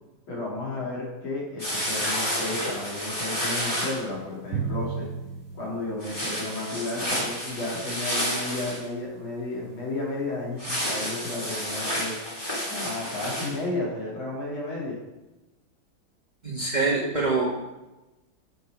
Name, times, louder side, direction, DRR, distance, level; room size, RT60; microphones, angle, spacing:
voice 1, 0.3-5.1 5.5-12.1 12.7-15.0, left 2 dB, 80° left, -4 dB, 3.3 m, -33 dB
sound 1, 1.6-4.0 6.0-8.8 10.6-13.6, equal, 10° left, 2.3 m, -30 dB
Drum, 4.5-6.9, right 6 dB, 70° right, 1.2 m, -34 dB
voice 2, 16.4-17.5, right 3 dB, 25° right, -4 dB, 1.5 m, -25 dB
6.7 x 6.4 x 4.9 m, 1.0 s
omnidirectional pair, 2.2 m